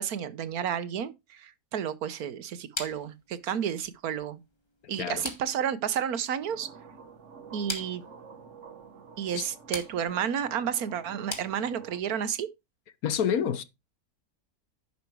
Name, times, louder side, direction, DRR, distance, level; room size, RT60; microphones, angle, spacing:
voice 1, 0.0-4.4 4.9-6.7 7.5-8.0 9.2-12.5, right 8 dB, 75° right, 1.4 m, -31 dB
sound 1, 2.7-12.1, left 1 dB, 15° left, 2.0 m, -43 dB
sound 2, 6.4-12.0, right 5 dB, 50° right, 1.4 m, -49 dB
voice 2, 13.0-13.6, left 8 dB, 70° left, 1.4 m, -27 dB
10.5 x 5.8 x 4.6 m
omnidirectional pair, 1.6 m